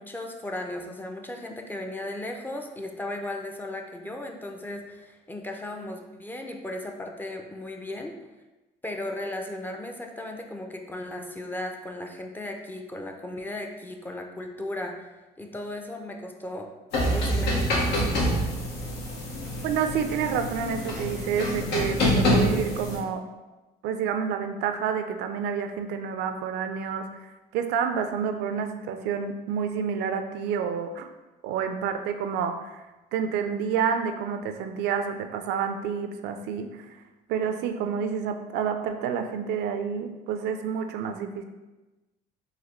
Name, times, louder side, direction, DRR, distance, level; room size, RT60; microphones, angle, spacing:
voice 1, 0.0-8.1 8.8-15.1 15.4-16.7 17.1-18.0, left 1 dB, 10° left, 2 dB, 0.4 m, -36 dB
sound 1, 16.9-23.0, equal, 85° left, 1.0 m, -26 dB
voice 2, 19.6-23.2 23.8-31.1 31.4-32.8 33.1-37.0 37.3-41.4, right 7 dB, 85° right, 7 dB, 0.4 m, -29 dB
4.0 x 2.7 x 3.0 m, 1.1 s
cardioid pair, 110°, 17 cm